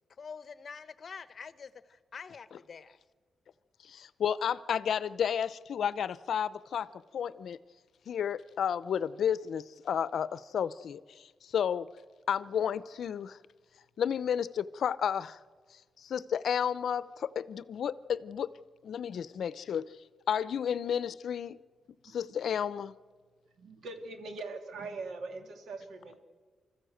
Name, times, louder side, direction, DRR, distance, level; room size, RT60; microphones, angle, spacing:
voice 1, 0.2-3.0, left 5 dB, 50° left, 14 dB, 0.9 m, -46 dB
voice 2, 3.8-6.9 7.1-7.6 8.1-11.9 12.3-13.4 14.0-15.4 16.0-18.5 18.8-19.9 20.3-21.6 22.0-22.9, left 8 dB, 75° left, 17 dB, 0.6 m, -32 dB
voice 3, 23.6-26.2, right 3 dB, 80° right, 5 dB, 2.6 m, -42 dB
25.5 x 14.5 x 7.9 m, 1.5 s
cardioid pair, 110°, 0 cm